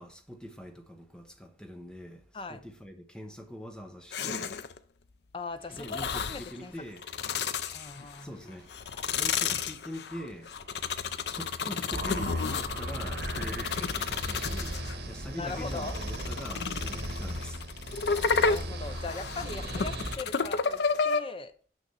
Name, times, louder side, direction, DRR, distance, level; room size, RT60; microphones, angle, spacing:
voice 1, 0.0-4.6 5.7-7.0 8.2-8.7 9.1-17.6, equal, 5° left, 0.9 m, -43 dB
sound 1, 4.1-4.8 5.8-6.5 7.0-8.2 8.7-15.0 15.5-21.2, left 5 dB, 70° left, 0.5 m, -31 dB
voice 2, 5.3-6.0 6.3-6.7 7.7-8.4 15.4-15.9 18.4-21.5, left 3 dB, 30° left, 0.7 m, -39 dB
Rain, 5.6-13.5, right 1 dB, 15° right, 4.4 m, -60 dB
sound 2, 11.9-20.2, right 1 dB, 75° right, 1.5 m, -37 dB
6.5 x 6.0 x 5.5 m
head